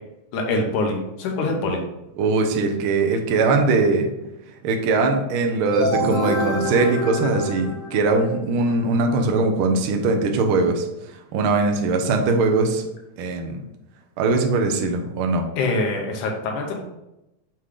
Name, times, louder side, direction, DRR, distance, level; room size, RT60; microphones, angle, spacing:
voice 1, 0.3-1.8 15.6-16.8, left 2 dB, 80° left, 1 dB, 2.4 m, -24 dB
voice 2, 2.2-4.1 4.6-10.9 11.3-12.8 13.2-13.6 14.2-15.4, right 3 dB, 75° right, 3 dB, 1.2 m, -21 dB
sound 1, 5.7-8.4, equal, 65° left, 0.4 m, -26 dB
6.5 x 4.5 x 3.7 m, 0.91 s
omnidirectional pair, 3.5 m